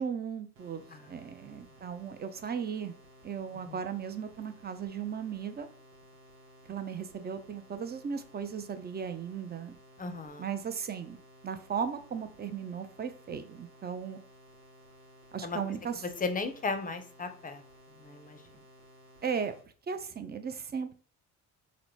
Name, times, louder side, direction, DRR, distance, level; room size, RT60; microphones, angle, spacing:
voice 1, 0.0-2.9 3.2-5.7 6.7-9.8 10.4-11.2 11.4-14.2 15.3-15.9 19.2-19.5 19.9-20.9, right 7 dB, 25° right, 10 dB, 0.4 m, -36 dB
sound 1, 0.6-19.7, equal, 90° right, 0.9 m, -57 dB
voice 2, 10.0-10.4 15.4-15.6 16.0-17.6 18.0-18.4, left 4 dB, 20° left, 8 dB, 0.6 m, -36 dB
3.8 x 2.1 x 3.1 m, 0.42 s
supercardioid pair, 65°, 41 cm